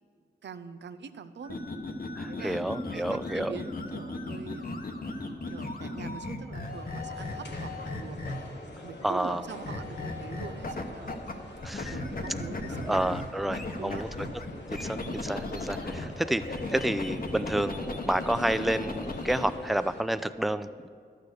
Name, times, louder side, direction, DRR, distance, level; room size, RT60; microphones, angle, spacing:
voice 1, 0.4-1.6 2.3-4.8 5.5-8.2 8.8-11.2 11.9-14.0 14.9-15.2, right 6 dB, 80° right, 11 dB, 0.5 m, -43 dB
sound 1, 1.4-8.6 9.6-11.3 11.6-16.1 16.4-19.5, left 2 dB, 55° left, 1.0 m, -36 dB
voice 2, 2.2-3.6 9.0-9.4 11.6-11.9 12.9-14.1 14.7-20.9, right 1 dB, ahead, 12 dB, 0.4 m, -30 dB
sound 2, 6.6-20.0, left 2 dB, 70° left, 1.4 m, -45 dB
11.5 x 6.7 x 6.4 m, 2.1 s
cardioid pair, 45°, 18 cm